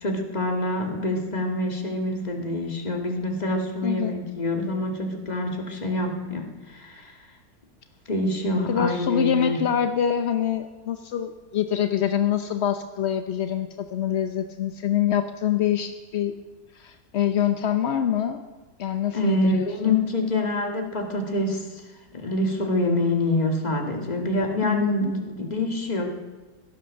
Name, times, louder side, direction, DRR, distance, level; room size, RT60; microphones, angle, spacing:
voice 1, 0.0-7.1 8.1-9.6 19.1-21.7 22.1-26.1, left 1 dB, 25° left, 2 dB, 1.9 m, -26 dB
voice 2, 3.8-4.1 8.7-16.3 16.7-18.4 18.8-20.0 24.6-25.1, left 9 dB, 60° left, 7 dB, 0.7 m, -25 dB
17.0 x 12.0 x 6.4 m, 1.2 s
omnidirectional pair, 1.9 m